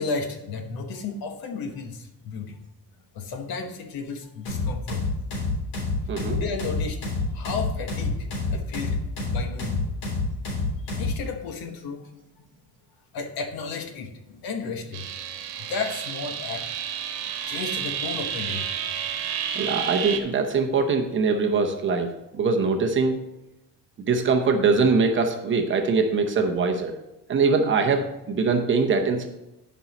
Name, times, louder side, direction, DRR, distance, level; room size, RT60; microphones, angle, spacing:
voice 1, 0.0-2.6 3.1-5.0 6.3-9.0 9.3-9.8 11.0-12.1 13.1-15.1 15.7-16.7 17.5-18.7, left 4 dB, 60° left, 6 dB, 1.2 m, -33 dB
sound 1, 4.5-11.2, left 3 dB, 85° left, 3.6 m, -27 dB
voice 2, 6.1-6.4 19.5-23.2 24.0-26.9 27.3-29.3, right 4 dB, 30° right, 3 dB, 0.8 m, -22 dB
sound 2, 14.9-20.2, right 9 dB, 65° right, 1.3 m, -31 dB
10.5 x 5.5 x 4.2 m, 0.94 s
cardioid pair, 160°, 41 cm